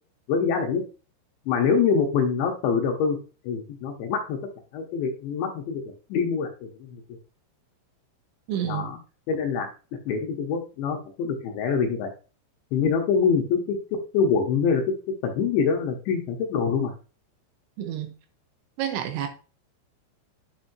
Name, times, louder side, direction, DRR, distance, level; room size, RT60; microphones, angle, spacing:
voice 1, 0.3-0.8 1.5-3.2 3.4-4.4 4.7-5.8 6.1-7.0 8.6-9.0 9.3-9.7 10.1-12.1 12.7-14.8 15.2-16.9, left 6 dB, 75° left, 2.9 m, -25 dB
voice 2, 8.5-8.9 17.8-18.2 18.8-19.3, right 10 dB, 80° right, 3.0 m, -29 dB
9.7 x 6.1 x 2.6 m
omnidirectional pair, 5.9 m